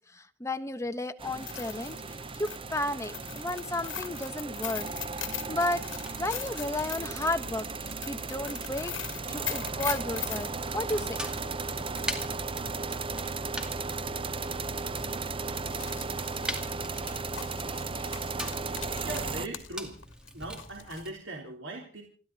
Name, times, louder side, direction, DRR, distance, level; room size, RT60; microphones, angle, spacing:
voice 1, 0.1-2.0 2.3-4.9 5.1-5.8 6.2-8.9 9.3-11.2 11.7-11.9, left 1 dB, 15° left, 9 dB, 1.1 m, -33 dB
sound 1, 1.2-19.5, right 4 dB, 30° right, 0.7 m, -35 dB
sound 2, 1.3-10.5 12.6-12.7 13.1-13.2 14.0-14.2 14.5-14.7 15.5-19.7 20.0-21.1, left 12 dB, 75° left, 2.0 m, -40 dB
Fire, 5.8-21.1, equal, 5° right, 2.4 m, -44 dB
voice 2, 19.0-20.0 20.3-22.0, right 1 dB, 75° right, 0 dB, 3.7 m, -39 dB
29.5 x 12.0 x 4.1 m, 0.41 s
head